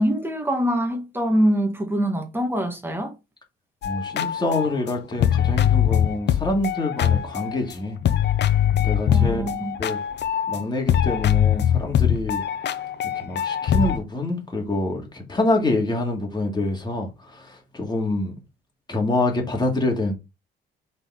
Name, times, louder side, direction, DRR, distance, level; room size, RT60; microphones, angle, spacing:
voice 1, 0.0-3.1 9.1-9.8, equal, 10° right, 1.7 m, -24 dB
sound 1, 3.8-7.7 8.0-10.6 10.9-14.0, left 10 dB, 60° left, 0.7 m, -22 dB
voice 2, 3.8-8.0 8.8-9.4 9.8-10.0 10.5-12.4 13.2-18.3 18.9-20.1, left 2 dB, 20° left, 2.4 m, -26 dB
5.1 x 4.1 x 4.8 m
cardioid pair, 90°, 20 cm